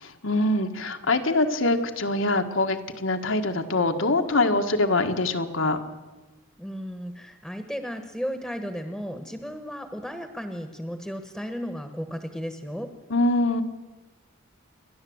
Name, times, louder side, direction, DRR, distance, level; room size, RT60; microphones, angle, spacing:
voice 1, 0.2-5.8 13.1-13.6, left 2 dB, 70° left, 6 dB, 1.7 m, -24 dB
voice 2, 6.6-12.9, equal, ahead, 7 dB, 1.3 m, -34 dB
28.5 x 11.5 x 8.0 m, 1.2 s
head